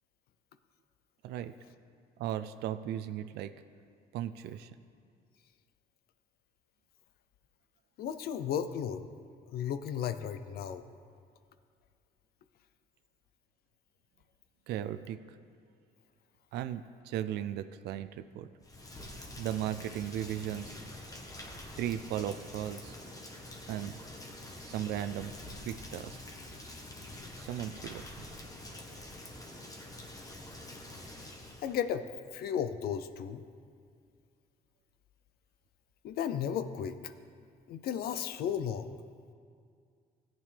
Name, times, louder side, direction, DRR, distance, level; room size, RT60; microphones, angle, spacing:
voice 1, 2.2-3.5 4.1-4.7 14.7-15.4 16.5-18.5 19.4-20.8 21.8-22.9 23.7-24.0 24.7-25.3 25.6-26.2 27.4-28.0, right 11 dB, 75° right, 11 dB, 0.4 m, -36 dB
voice 2, 8.0-9.0 9.5-10.8 31.6-32.0 32.3-33.4 36.0-37.1 37.7-39.0, left 8 dB, 65° left, 12 dB, 0.5 m, -34 dB
Rain, 18.6-31.8, left 1 dB, 20° left, 1.2 m, -46 dB
14.0 x 9.1 x 3.4 m, 2.2 s
cardioid pair, 110°, 17 cm